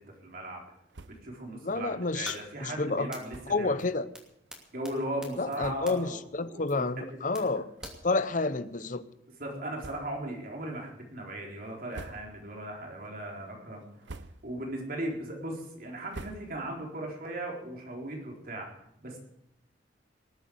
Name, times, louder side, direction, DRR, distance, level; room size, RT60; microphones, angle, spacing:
voice 1, 0.2-0.6 1.2-3.8 4.7-7.5 9.4-13.9 14.4-18.7 19.0-19.2, right 1 dB, 50° right, 0 dB, 4.1 m, -37 dB
sound 1, 0.9-1.4 1.7-1.8 2.1-2.3 3.2-3.7 4.4-4.5 5.2-5.3 5.6-6.1 6.7-6.8 7.7-8.4 8.8-8.9 9.7-10.4 10.8-11.2 11.7-12.6 13.0-13.4 13.8-14.7 15.0-16.9, right 3 dB, 80° right, 0.8 m, -48 dB
voice 2, 1.6-3.1 3.5-4.1 5.4-7.7 8.0-9.0, left 3 dB, 45° left, 13 dB, 0.8 m, -30 dB
sound 2, 2.2-2.4 3.1-3.2 3.8-3.9 4.1-4.2 4.5-4.6 4.8-4.9 5.2-5.6 5.9-6.0 6.7-6.8 7.3-7.4 7.8-7.9, left 1 dB, 5° right, 2.8 m, -42 dB
19.5 x 8.4 x 7.9 m, 0.78 s
head